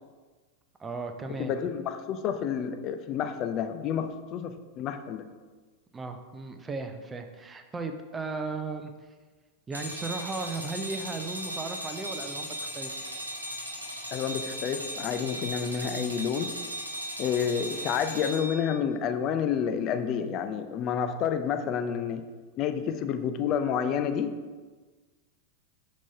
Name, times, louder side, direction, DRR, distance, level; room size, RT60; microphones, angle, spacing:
voice 1, 0.8-1.6 5.9-8.9 9.7-13.1, right 3 dB, 15° right, 6 dB, 0.5 m, -36 dB
voice 2, 1.4-5.2 14.1-16.5 17.2-22.2 22.6-24.3, left 7 dB, 35° left, 10 dB, 0.4 m, -29 dB
sound 1, 9.7-18.8, right 1 dB, 85° right, 1.2 m, -37 dB
6.1 x 4.2 x 5.2 m, 1.4 s
figure-of-eight pair, 90°, 0 cm